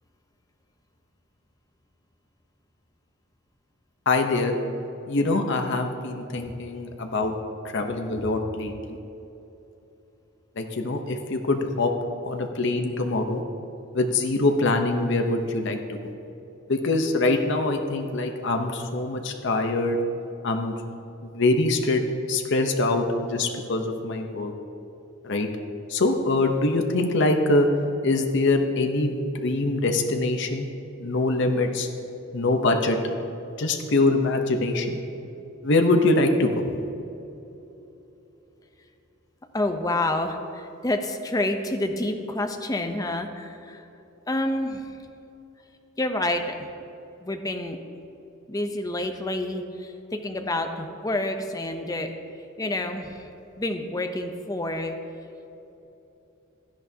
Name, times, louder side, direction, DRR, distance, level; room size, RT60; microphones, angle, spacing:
voice 1, 4.1-4.5 5.1-7.3 7.7-8.7 10.6-11.9 12.2-13.4 13.9-16.0 16.7-20.0 20.4-20.7 21.3-24.5 25.2-25.5 25.9-27.7 28.0-30.7 31.0-31.9 32.3-33.0 33.6-35.0 35.6-36.5, left 2 dB, 60° left, 4 dB, 0.8 m, -24 dB
voice 2, 39.5-43.8 44.3-44.8 46.0-46.5 47.2-47.8 48.5-52.1 52.6-53.3 53.6-55.0, left 1 dB, 15° left, 5 dB, 0.6 m, -28 dB
16.5 x 11.0 x 2.8 m, 2.9 s
head